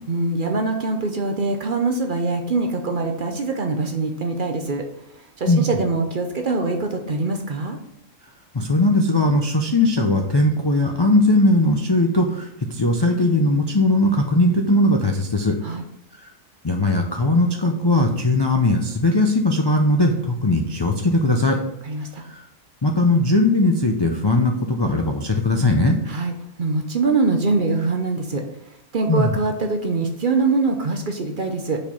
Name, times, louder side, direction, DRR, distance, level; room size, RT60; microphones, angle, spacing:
voice 1, 0.1-4.8 5.4-7.8 15.6-15.8 21.8-22.2 26.1-26.3 26.6-28.4 28.9-31.8, right 3 dB, 50° right, 4 dB, 0.7 m, -23 dB
voice 2, 8.5-15.6 16.6-21.6 22.3-22.4 22.8-26.0 29.1-29.4, left 2 dB, 35° left, 1 dB, 0.4 m, -19 dB
5.1 x 4.4 x 5.4 m, 0.78 s
omnidirectional pair, 1.3 m